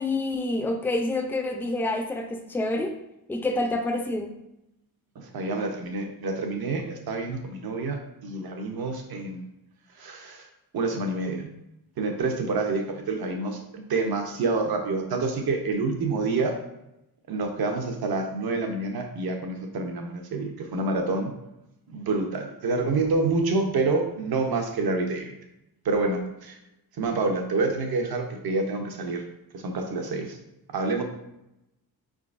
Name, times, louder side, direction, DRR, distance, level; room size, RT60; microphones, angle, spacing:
voice 1, 0.0-2.9 3.3-4.3, left 2 dB, 5° left, 4 dB, 0.4 m, -27 dB
voice 2, 5.2-9.5 10.0-10.5 10.7-11.5 12.0-16.5 17.3-21.3 21.9-25.3 25.8-26.6 27.0-29.2 29.5-30.4 30.7-31.0, right 3 dB, 70° right, 3 dB, 0.8 m, -27 dB
5.1 x 3.7 x 2.5 m, 0.87 s
wide cardioid pair, 135°, 39 cm